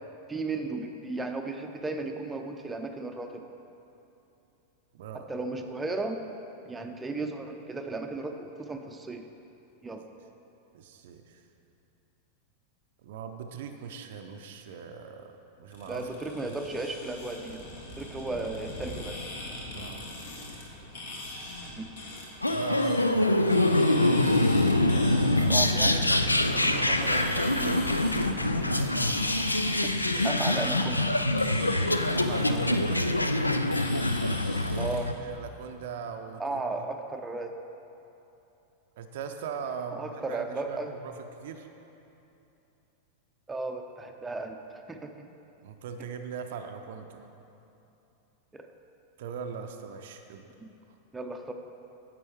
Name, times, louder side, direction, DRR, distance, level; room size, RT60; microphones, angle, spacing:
voice 1, 0.3-3.4 5.3-6.2 6.7-9.2 9.8-10.0 15.9-19.2 21.8-21.9 25.5-26.1 27.6-27.8 29.8-29.9 30.2-31.1 34.8-35.1 36.4-37.5 39.9-40.9 43.5-44.6 44.9-45.3 48.5-48.7 50.6-50.7 51.1-51.5, right 3 dB, 10° right, 4 dB, 0.6 m, -35 dB
voice 2, 4.9-5.3 10.7-11.4 13.0-16.1 16.4-16.6 19.7-20.2 22.5-24.3 24.9-27.5 30.1-30.3 32.1-33.1 34.6-36.8 39.0-41.7 45.6-47.3 49.2-50.5, right 6 dB, 55° right, 6 dB, 0.6 m, -41 dB
sound 1, 15.7-35.0, left 1 dB, 60° left, 1.7 m, -41 dB
sound 2, 22.4-35.1, left 1 dB, 85° left, 0.3 m, -25 dB
9.7 x 7.6 x 4.7 m, 2.9 s
figure-of-eight pair, 90°, 0 cm